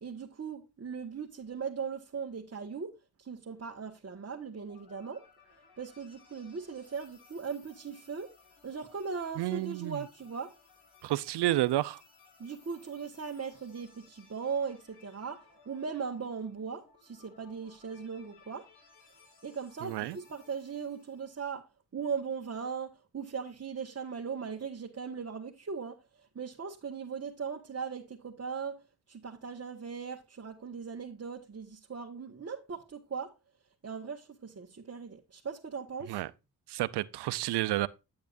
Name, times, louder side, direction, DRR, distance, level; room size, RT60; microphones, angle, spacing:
voice 1, 0.0-5.2 5.8-8.3 8.6-10.5 12.4-18.7 19.4-21.7 21.9-28.8 29.1-33.3 33.8-36.2, right 6 dB, 40° right, 1.6 m, -39 dB
sound 1, 4.6-21.4, left 5 dB, 75° left, 4.1 m, -61 dB
voice 2, 9.4-10.0 11.0-12.0 19.8-20.2 36.1-36.3 36.7-37.9, right 16 dB, 85° right, 0.6 m, -30 dB
9.4 x 8.6 x 2.6 m
cardioid pair, 60°, 39 cm